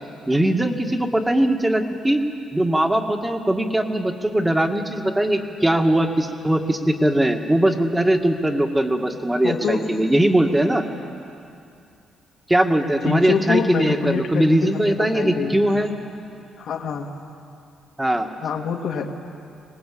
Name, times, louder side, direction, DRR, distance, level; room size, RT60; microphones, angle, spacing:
voice 1, 0.3-2.2 2.5-10.8 12.5-15.9 18.0-18.3, right 1 dB, 10° right, 4 dB, 2.0 m, -20 dB
voice 2, 9.4-9.9 13.0-15.8 16.6-17.1 18.4-19.2, left 6 dB, 70° left, 2 dB, 2.4 m, -26 dB
24.5 x 19.5 x 8.7 m, 2.5 s
cardioid pair, 90°, 0 cm